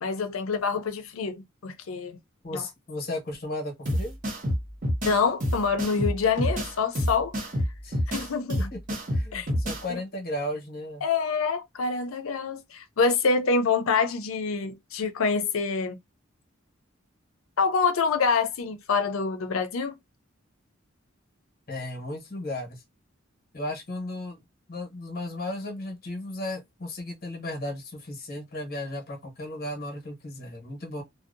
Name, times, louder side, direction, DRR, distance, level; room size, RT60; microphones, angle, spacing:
voice 1, 0.0-2.2 2.5-2.6 5.1-7.3 8.1-8.7 9.3-9.5 11.0-16.0 17.6-20.0, left 5 dB, 80° left, 0.5 m, -26 dB
voice 2, 2.4-4.1 7.8-8.0 8.7-11.0 21.7-22.8 23.5-24.4 24.7-31.0, left 1 dB, 50° left, 0.9 m, -35 dB
sound 1, 3.8-9.8, equal, 40° right, 0.7 m, -28 dB
2.6 x 2.0 x 2.5 m
head